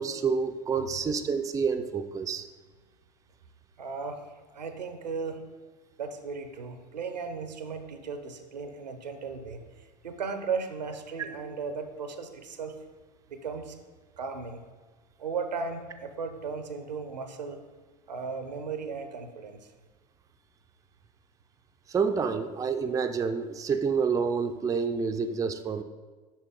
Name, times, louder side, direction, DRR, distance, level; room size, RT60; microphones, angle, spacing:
voice 1, 0.0-2.5 21.9-25.8, right 5 dB, 15° right, 7 dB, 0.4 m, -28 dB
voice 2, 3.8-4.2 4.5-5.4 6.0-12.8 13.3-13.7 14.2-14.6 15.2-17.6 18.1-19.7, right 5 dB, 85° right, 8 dB, 0.7 m, -36 dB
7.3 x 5.8 x 3.6 m, 1.4 s
figure-of-eight pair, 70°, 21 cm